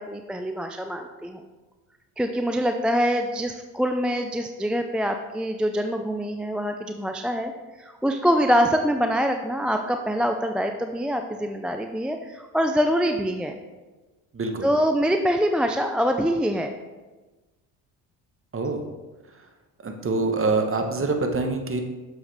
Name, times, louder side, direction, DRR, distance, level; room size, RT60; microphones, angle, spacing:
voice 1, 0.0-1.5 2.2-7.5 7.8-13.6 14.6-16.7 18.6-18.7, equal, ahead, 5 dB, 0.4 m, -24 dB
voice 2, 14.3-14.7 18.5-18.8 19.8-21.8, right 3 dB, 30° right, 5 dB, 1.2 m, -25 dB
7.0 x 6.4 x 3.4 m, 1.2 s
hypercardioid pair, 55°, 44 cm